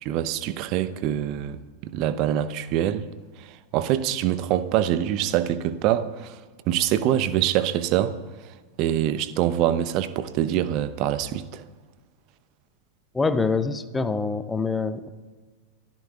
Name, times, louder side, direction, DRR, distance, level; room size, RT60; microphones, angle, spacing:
voice 1, 0.0-3.1 3.4-6.4 6.7-8.2 8.8-11.6, right 11 dB, 40° right, 0.8 m, -25 dB
voice 2, 13.1-15.1, left 4 dB, 10° left, 0.9 m, -25 dB
28.5 x 15.0 x 2.4 m
figure-of-eight pair, 90°, 0 cm